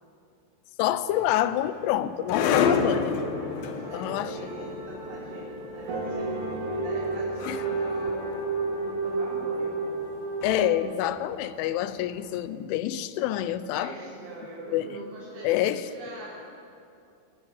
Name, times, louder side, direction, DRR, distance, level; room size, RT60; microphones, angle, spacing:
voice 1, 0.8-3.2 3.8-4.3 7.5-7.6 10.4-13.9 14.7-15.0 15.4-15.8, left 12 dB, 85° left, 13 dB, 3.2 m, -27 dB
sound 1, 1.1-12.2, left 6 dB, 65° left, 2.5 m, -32 dB
sound 2, 2.5-10.7, right 3 dB, 55° right, 4.9 m, -32 dB
voice 2, 3.5-8.2 8.7-9.8 13.8-15.6 15.8-16.4, right 2 dB, 75° right, -9 dB, 6.9 m, -42 dB
22.5 x 13.0 x 9.9 m, 2.6 s
omnidirectional pair, 5.5 m